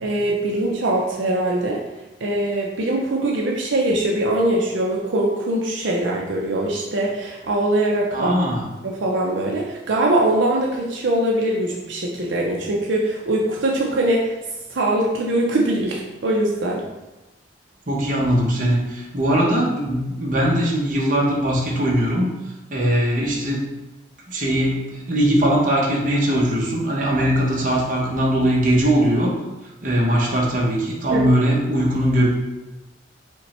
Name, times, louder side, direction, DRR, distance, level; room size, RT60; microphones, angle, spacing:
voice 1, 0.0-1.8 2.2-8.3 8.8-14.3 14.7-16.8 31.1-31.2, right 1 dB, 75° right, -2 dB, 0.5 m, -22 dB
voice 2, 8.1-8.7 17.9-22.3 22.7-23.6 24.3-29.4 29.8-32.3, equal, 45° right, -3 dB, 0.9 m, -20 dB
5.2 x 2.2 x 4.2 m, 1.0 s
head